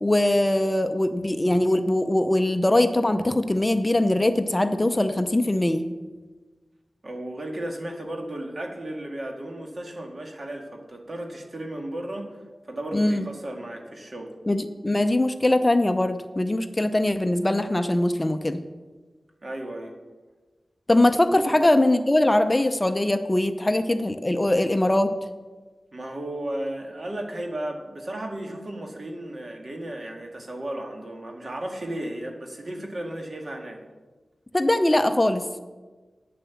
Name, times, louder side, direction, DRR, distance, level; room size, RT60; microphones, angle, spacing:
voice 1, 0.0-5.8 12.9-13.3 14.5-18.6 20.9-25.1 34.5-35.6, left 1 dB, 20° left, 9 dB, 0.6 m, -22 dB
voice 2, 7.0-12.4 12.6-14.3 19.4-20.0 21.4-21.6 25.9-33.8, right 1 dB, 50° right, 2 dB, 1.9 m, -34 dB
9.4 x 7.6 x 7.1 m, 1.3 s
wide cardioid pair, 75°, 0 cm